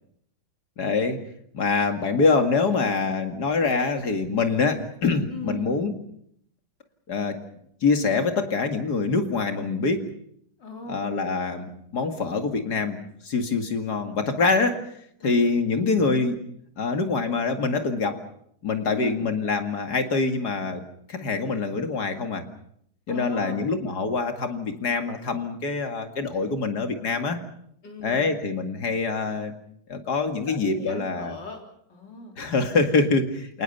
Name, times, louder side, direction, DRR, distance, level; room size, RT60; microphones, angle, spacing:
voice 1, 0.8-1.2 1.5-5.9 7.1-7.4 7.8-10.1 10.9-14.8 15.2-16.4 16.8-18.2 18.6-20.8 21.1-22.4 23.1-27.4 28.0-29.5 29.9-31.4 32.4-33.6, left 4 dB, 65° left, 6 dB, 2.7 m, -25 dB
voice 2, 5.3-5.8 10.6-11.1 15.2-15.5 18.9-19.3 23.1-23.6 27.8-28.2 30.5-32.4, left 2 dB, 90° left, 2 dB, 4.5 m, -38 dB
28.0 x 19.0 x 6.8 m, 0.68 s
omnidirectional pair, 1.9 m